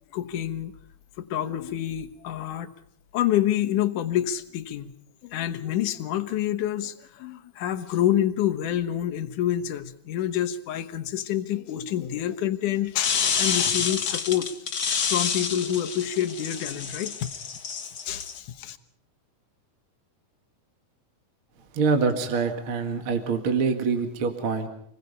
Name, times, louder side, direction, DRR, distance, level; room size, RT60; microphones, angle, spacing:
voice 1, 0.1-0.8 1.2-2.7 3.1-4.9 5.2-14.5 15.1-17.1 18.1-18.8, left 11 dB, 75° left, 8 dB, 2.6 m, -27 dB
sound 1, 13.0-18.4, left 6 dB, 45° left, 1.6 m, -28 dB
voice 2, 21.7-24.7, right 5 dB, 45° right, 5 dB, 2.3 m, -25 dB
28.0 x 21.0 x 5.6 m, 0.70 s
omnidirectional pair, 3.6 m